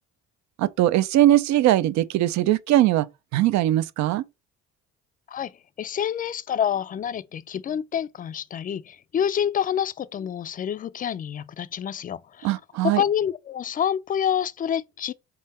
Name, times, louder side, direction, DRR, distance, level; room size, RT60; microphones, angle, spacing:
voice 1, 0.6-3.1 3.3-4.3 12.4-13.0, right 14 dB, 70° right, 0.5 m, -20 dB
voice 2, 5.8-12.5 12.8-15.1, left 9 dB, 30° left, 0.4 m, -27 dB
3.8 x 3.2 x 4.1 m
cardioid pair, 90°, 29 cm